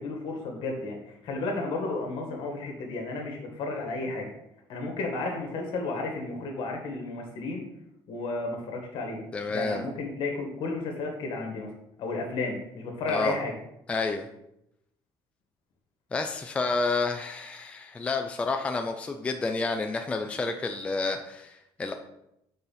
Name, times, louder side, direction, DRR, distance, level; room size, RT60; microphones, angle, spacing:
voice 1, 0.0-4.3 4.7-7.6 8.1-9.2 9.5-11.7 12.0-13.5, left 3 dB, 65° left, 2 dB, 1.9 m, -32 dB
voice 2, 9.3-9.9 13.1-13.4 13.9-14.3 16.1-21.9, left 3 dB, 15° left, 5 dB, 0.4 m, -30 dB
6.7 x 4.1 x 5.6 m, 0.83 s
cardioid pair, 175°, 9 cm